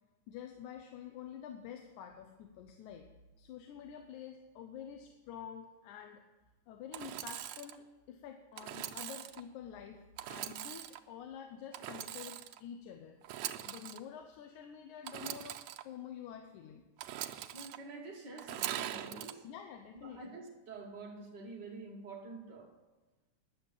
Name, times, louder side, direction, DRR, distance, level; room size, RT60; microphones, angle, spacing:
voice 1, 0.3-3.1 3.4-6.2 6.7-10.0 10.3-13.2 13.7-16.8 19.4-20.4, left 8 dB, 90° left, 5 dB, 2.2 m, -48 dB
Engine / Sawing, 6.9-7.8 8.6-9.4 10.2-11.0 11.7-12.6 13.2-14.0 15.0-15.8 17.0-17.8 18.4-19.3, right 12 dB, 80° right, 1.7 m, -41 dB
voice 2, 17.5-19.4 20.0-22.7, right 3 dB, 45° right, 1 dB, 1.6 m, -47 dB
10.0 x 7.1 x 8.8 m, 1.1 s
omnidirectional pair, 3.4 m